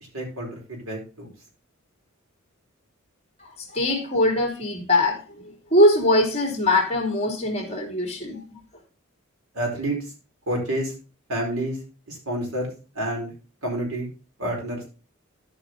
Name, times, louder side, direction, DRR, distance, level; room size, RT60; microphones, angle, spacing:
voice 1, 0.1-1.3 9.5-10.0 10.5-10.9 11.3-11.8 12.1-13.3 13.6-14.1 14.4-14.9, right 1 dB, 80° right, 0 dB, 4.4 m, -29 dB
voice 2, 3.7-8.4, left 1 dB, 30° left, 2 dB, 2.8 m, -22 dB
13.5 x 5.5 x 3.8 m, 0.32 s
head